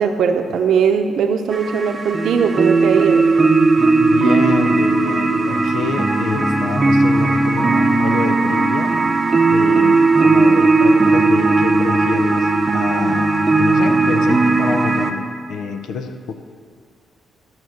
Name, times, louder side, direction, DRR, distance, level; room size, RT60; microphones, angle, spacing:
voice 1, 0.0-3.3, right 6 dB, 70° right, 6 dB, 0.8 m, -19 dB
sound 1, 1.5-15.1, right 3 dB, 25° right, 0.7 m, -16 dB
voice 2, 4.0-8.9 9.5-16.3, left 5 dB, 80° left, 7 dB, 0.7 m, -27 dB
12.5 x 6.1 x 6.5 m, 2.1 s
cardioid pair, 115°, 0 cm